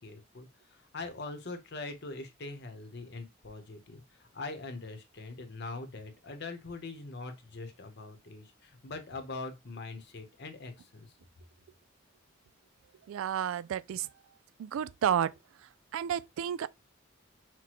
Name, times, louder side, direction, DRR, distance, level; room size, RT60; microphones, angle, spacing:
voice 1, 0.0-11.1, left 3 dB, 55° left, 0.9 m, -42 dB
voice 2, 13.1-14.1 14.6-15.3 15.9-16.7, right 9 dB, 85° right, 0.3 m, -31 dB
5.9 x 2.2 x 3.0 m
head